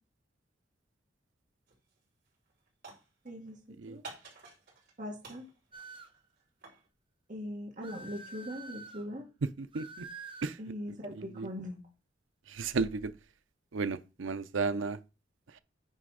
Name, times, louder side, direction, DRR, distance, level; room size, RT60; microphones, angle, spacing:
sound 1, 1.7-2.0 2.3-3.5 4.0-4.9 5.2-6.9, right 3 dB, 60° right, 4.0 m, -51 dB
voice 1, 3.2-3.6 3.9-4.1 5.0-5.4 7.3-9.3 10.6-11.8, equal, 45° right, 1.7 m, -41 dB
sound 2, 5.7-6.2 7.8-9.0 9.7-10.6, right 3 dB, 30° right, 0.9 m, -47 dB
voice 2, 9.6-10.1 10.4-10.6 11.4-11.5 12.5-13.1 13.7-15.0, right 4 dB, 85° right, 0.6 m, -33 dB
9.3 x 3.4 x 4.9 m
head